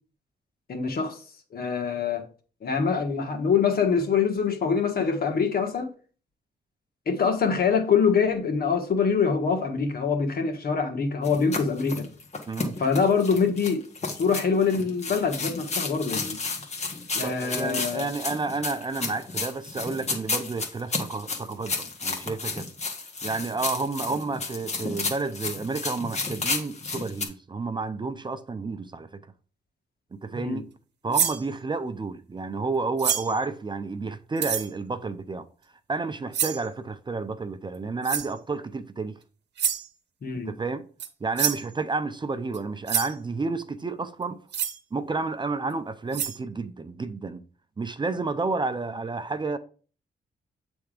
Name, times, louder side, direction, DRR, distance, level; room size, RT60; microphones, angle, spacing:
voice 1, 0.7-1.2 1.5-2.2 2.6-5.9 7.0-12.0 12.8-13.8 14.1-16.4 17.1-18.1 30.3-30.6 40.2-40.5, left 5 dB, 60° left, 1.5 m, -24 dB
sound 1, 11.2-27.3, left 3 dB, 40° left, 1.5 m, -32 dB
voice 2, 17.2-22.7 23.2-29.2 30.2-30.7 31.0-35.5 35.9-39.2 40.5-40.9 41.2-44.4 44.9-47.4 47.8-49.6, right 3 dB, 25° right, 0.6 m, -30 dB
sound 2, 31.1-31.4 33.0-33.4 34.4-34.7 36.3-36.7 38.0-38.3 39.6-39.9 41.0-41.1 41.4-41.7 42.5-42.6 42.9-43.1 44.5-44.8 45.7-45.8 46.1-46.4, right 8 dB, 80° right, 0.9 m, -27 dB
8.6 x 3.5 x 5.0 m
cardioid pair, 95°, 17 cm